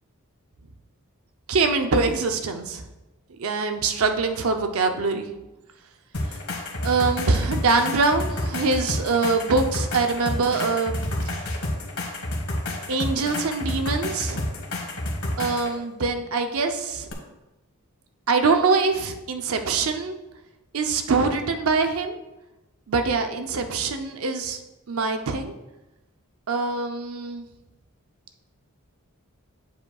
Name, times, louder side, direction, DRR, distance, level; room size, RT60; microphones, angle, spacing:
voice 1, 1.5-2.8 3.4-5.3 6.8-11.0 11.3-11.4 12.9-14.5 15.4-17.1 18.3-20.2 20.7-22.1 22.9-24.6 24.9-25.5 26.5-27.5, right 4 dB, 75° right, 6 dB, 0.6 m, -24 dB
sound 1, 6.1-15.7 17.1-17.2, left 1 dB, 80° left, 1.4 m, -30 dB
8.1 x 7.3 x 2.3 m, 0.99 s
head